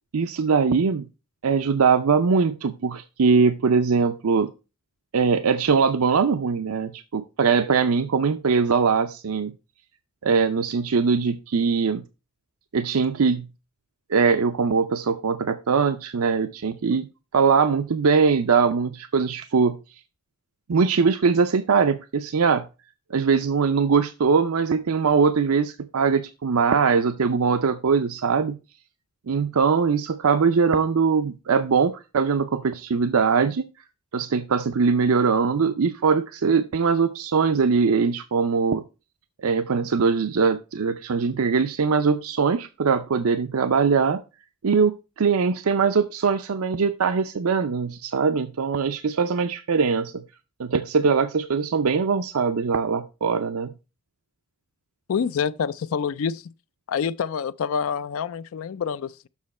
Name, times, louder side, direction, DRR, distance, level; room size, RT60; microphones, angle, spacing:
voice 1, 0.1-1.0 1.4-4.5 5.1-9.5 10.2-12.0 12.7-13.5 14.1-17.1 17.3-19.8 20.7-22.7 23.1-28.6 29.3-33.7 34.1-38.8 39.4-44.2 44.6-50.1 50.6-53.7, right 5 dB, 85° right, 0.5 m, -21 dB
voice 2, 55.1-56.5 56.9-59.3, left 6 dB, 75° left, 0.4 m, -27 dB
7.3 x 6.2 x 4.2 m
head